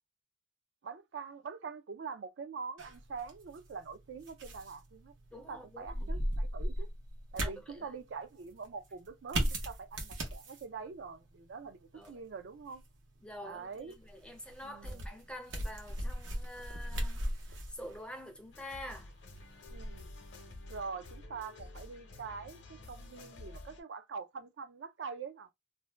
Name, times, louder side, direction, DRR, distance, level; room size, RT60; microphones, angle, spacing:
voice 1, 0.8-6.9 7.3-12.8 13.4-14.0 14.6-15.1 19.7-20.2 20.7-25.5, right 5 dB, 65° right, 0.4 m, -44 dB
sound 1, 2.8-20.9, equal, 90° right, 0.9 m, -40 dB
voice 2, 5.3-6.2 7.4-7.5 11.9-12.1 13.2-17.2 17.7-19.1, left 1 dB, 5° left, 0.4 m, -47 dB
sound 2, 18.5-23.8, left 2 dB, 65° left, 0.7 m, -50 dB
2.6 x 2.1 x 3.2 m
head